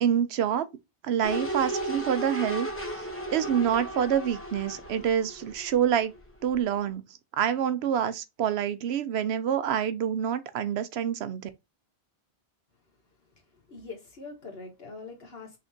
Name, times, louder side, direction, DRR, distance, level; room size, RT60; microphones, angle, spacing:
voice 1, 0.0-0.7 1.0-2.7 3.3-6.1 6.4-7.0 7.4-11.5, right 9 dB, 75° right, 0.9 m, -27 dB
sound 1, 1.2-6.2 6.5-6.6, right 1 dB, 10° left, 1.1 m, -35 dB
voice 2, 13.2-15.6, left 3 dB, 65° left, 1.8 m, -44 dB
5.6 x 3.3 x 2.7 m
omnidirectional pair, 1.1 m